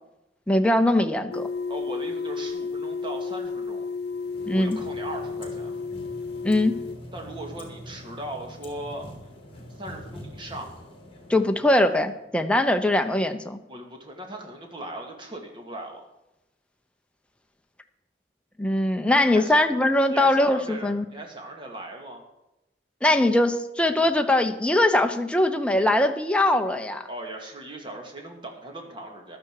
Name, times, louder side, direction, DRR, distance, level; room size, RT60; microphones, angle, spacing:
voice 1, 0.5-1.5 4.5-4.8 6.4-6.8 11.3-13.6 18.6-21.0 23.0-27.1, left 1 dB, 5° left, 5 dB, 0.8 m, -21 dB
sound 1, 1.3-7.0, left 4 dB, 65° left, 0.6 m, -32 dB
voice 2, 1.7-3.9 4.5-5.7 7.1-9.1 9.8-10.7 13.7-16.0 19.3-19.7 20.1-22.2 27.1-29.4, right 1 dB, 30° right, 2 dB, 2.3 m, -38 dB
sound 2, 4.0-12.2, left 1 dB, 30° left, 3.0 m, -44 dB
14.5 x 11.5 x 4.8 m, 0.91 s
head